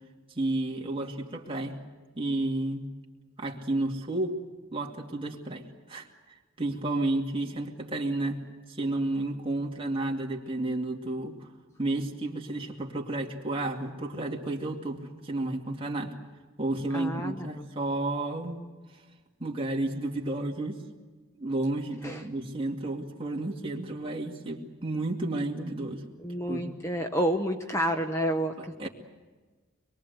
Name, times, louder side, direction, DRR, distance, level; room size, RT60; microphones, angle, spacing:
voice 1, 0.4-1.8 2.2-2.8 3.4-4.4 4.7-5.6 5.9-6.1 6.6-8.4 8.7-11.5 11.8-16.1 16.6-18.6 19.4-20.8 21.4-26.0 26.5-26.8 28.6-28.9, right 2 dB, 25° right, 0 dB, 2.4 m, -31 dB
voice 2, 16.9-17.7 22.0-22.2 26.2-28.9, equal, 15° left, 5 dB, 0.9 m, -30 dB
25.0 x 22.5 x 8.2 m, 1.3 s
head